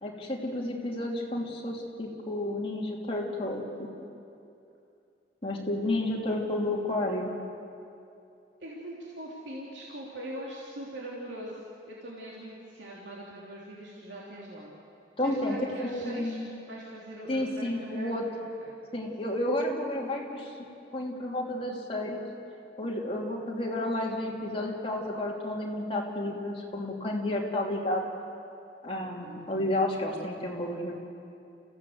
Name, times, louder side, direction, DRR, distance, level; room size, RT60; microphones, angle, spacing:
voice 1, 0.0-3.9 5.4-7.3 15.2-16.5 17.3-18.2 18.9-20.6 20.9-22.2 22.8-28.0 28.8-30.9, left 1 dB, 30° left, -1 dB, 3.0 m, -31 dB
voice 2, 8.6-14.7 15.2-16.4 16.7-18.1 18.6-18.7 29.2-29.8, right 1 dB, 85° right, -4 dB, 3.1 m, -42 dB
28.5 x 16.0 x 8.0 m, 2.6 s
head